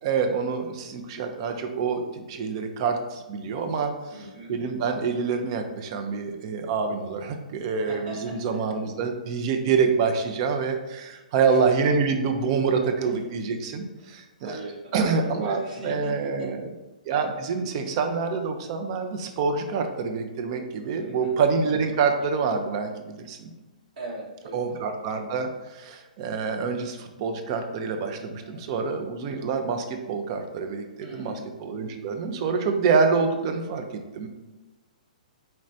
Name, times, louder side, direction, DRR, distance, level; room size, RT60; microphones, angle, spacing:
voice 1, 0.0-3.9 4.5-14.6 14.9-16.7 17.1-23.5 24.5-33.8 34.1-34.3, right 5 dB, 40° right, 6 dB, 0.5 m, -26 dB
voice 2, 4.1-4.5 7.7-8.8 11.5-11.6 12.8-13.1 14.0-16.5 21.0-21.3 24.0-24.8 28.4-28.9 31.0-31.4, right 1 dB, 65° right, -3 dB, 1.2 m, -40 dB
4.3 x 3.0 x 2.5 m, 1.1 s
figure-of-eight pair, 120°, 4 cm